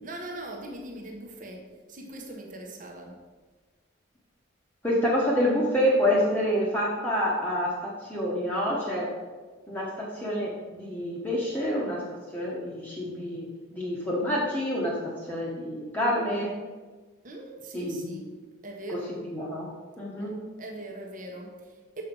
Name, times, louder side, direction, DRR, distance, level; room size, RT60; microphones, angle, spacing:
voice 1, 0.0-1.6 1.9-3.2 17.2-18.3 18.6-19.2 20.2-22.0, right 1 dB, 40° right, 1 dB, 1.1 m, -41 dB
voice 2, 4.8-9.1 9.7-12.0 12.3-13.4 13.7-15.0 15.3-16.5 17.7-18.2 18.9-19.7 20.0-20.3, equal, 10° left, -6 dB, 1.1 m, -27 dB
7.0 x 5.5 x 5.3 m, 1.4 s
head